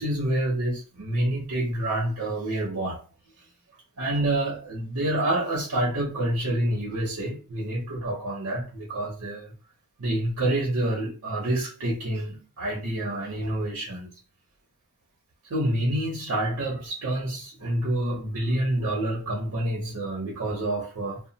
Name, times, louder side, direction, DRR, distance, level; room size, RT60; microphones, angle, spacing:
voice 1, 0.0-3.0 4.0-9.5 10.0-14.1 15.5-21.2, right 1 dB, 70° right, 0.7 m, -28 dB
2.3 x 2.1 x 3.8 m
head